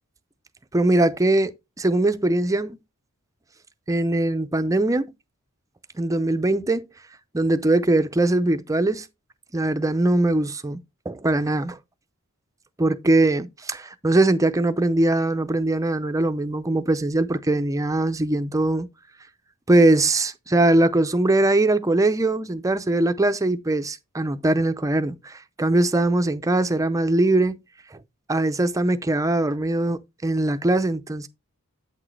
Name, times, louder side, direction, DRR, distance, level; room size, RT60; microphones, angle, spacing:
voice 1, 0.7-1.5 1.8-2.8 3.9-5.1 6.0-6.8 7.3-9.1 9.5-10.8 11.1-11.8 12.8-18.9 19.7-27.6 28.3-31.3, right 2 dB, 15° right, 0.5 m, -21 dB
8.3 x 6.2 x 3.2 m
head